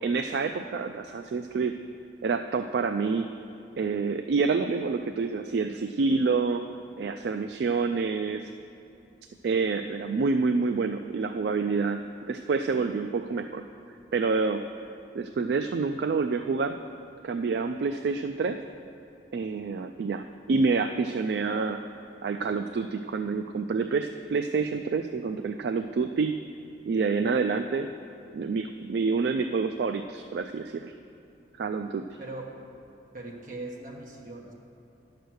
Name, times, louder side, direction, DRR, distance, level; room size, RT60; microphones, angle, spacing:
voice 1, 0.0-1.7 2.2-3.3 3.8-6.6 7.0-8.4 9.4-13.6 14.1-14.6 15.1-16.8 17.2-18.6 19.3-21.8 22.2-26.3 26.9-27.9 28.3-30.9 31.6-32.2, right 4 dB, 65° right, 7 dB, 0.3 m, -27 dB
voice 2, 32.2-32.6 33.1-34.5, right 2 dB, 45° right, -1 dB, 1.3 m, -40 dB
10.0 x 6.7 x 6.3 m, 2.7 s
head